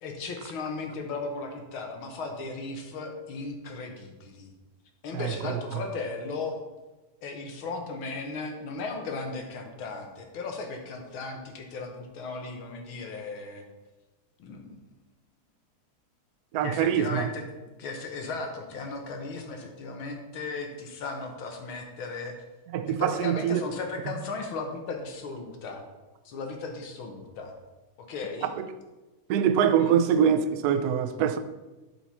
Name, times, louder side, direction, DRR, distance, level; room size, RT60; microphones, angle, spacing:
voice 1, 0.0-4.5 5.0-6.6 7.2-13.6 14.4-14.8 16.6-22.3 23.0-25.8 26.3-27.5 28.1-28.5 29.8-30.0, left 3 dB, 70° left, 2.0 m, -36 dB
voice 2, 5.1-5.8 16.5-17.3 22.7-23.6 28.6-28.7 29.3-31.4, right 8 dB, 80° right, 0.8 m, -24 dB
9.6 x 6.8 x 4.3 m
omnidirectional pair, 2.4 m